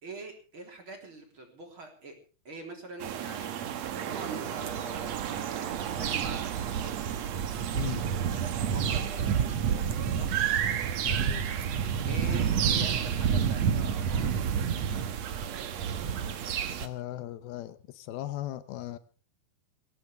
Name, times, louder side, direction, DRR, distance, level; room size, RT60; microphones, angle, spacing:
voice 1, 0.0-2.1 2.4-3.6 3.9-7.0 8.5-10.3 12.0-15.1, right 2 dB, 35° right, 3 dB, 4.2 m, -45 dB
sound 1, 3.0-16.9, right 8 dB, 60° right, 2.0 m, -29 dB
voice 2, 11.0-11.5 16.8-19.0, left 14 dB, 80° left, 13 dB, 2.8 m, -38 dB
22.0 x 17.0 x 3.5 m, 0.36 s
omnidirectional pair, 4.4 m